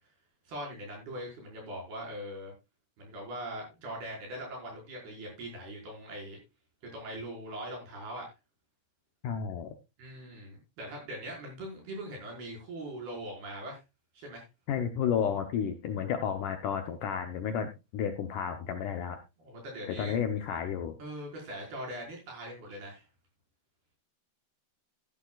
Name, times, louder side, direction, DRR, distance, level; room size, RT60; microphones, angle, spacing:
voice 1, 0.5-2.5 3.0-6.4 6.8-8.3 10.0-13.8 14.2-14.5 19.4-20.2 21.0-23.0, right 1 dB, 70° right, -1 dB, 7.0 m, -41 dB
voice 2, 9.2-9.7 14.7-19.2 20.0-21.0, left 8 dB, 70° left, 6 dB, 2.0 m, -32 dB
15.0 x 11.0 x 2.4 m, 0.25 s
omnidirectional pair, 4.6 m